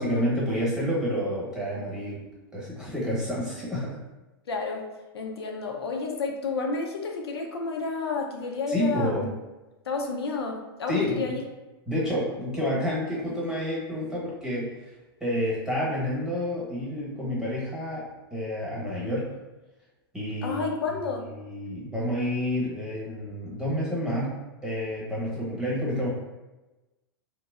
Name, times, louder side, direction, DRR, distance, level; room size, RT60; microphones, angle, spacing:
voice 1, 0.0-2.2 2.5-4.0 8.7-9.2 10.9-11.3 11.9-14.7 15.2-19.3 20.1-20.6 21.3-26.1, equal, 5° right, -7 dB, 0.9 m, -29 dB
voice 2, 4.5-4.9 5.1-9.3 9.9-11.4 20.4-21.3, left 4 dB, 90° left, 1 dB, 0.4 m, -31 dB
2.9 x 2.1 x 2.3 m, 1.1 s
hypercardioid pair, 120°, 13 cm